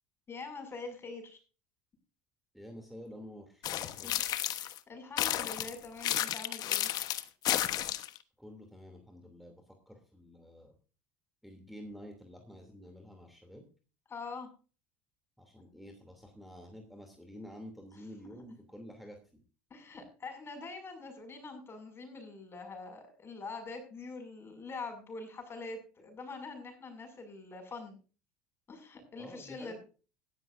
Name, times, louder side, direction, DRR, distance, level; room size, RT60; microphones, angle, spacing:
voice 1, 0.3-1.4 4.0-4.1 4.4-6.9 14.1-14.5 17.9-18.3 19.7-28.0 28.7-29.8, left 3 dB, 30° left, 6 dB, 6.4 m, -44 dB
voice 2, 2.5-4.3 8.4-10.7 11.4-13.6 15.4-19.2 29.2-29.8, equal, ahead, 4 dB, 2.9 m, -49 dB
sound 1, 3.6-4.8 5.2-8.2, left 13 dB, 55° left, 1.2 m, -32 dB
17.0 x 13.0 x 2.6 m, 0.36 s
supercardioid pair, 95°, 8 cm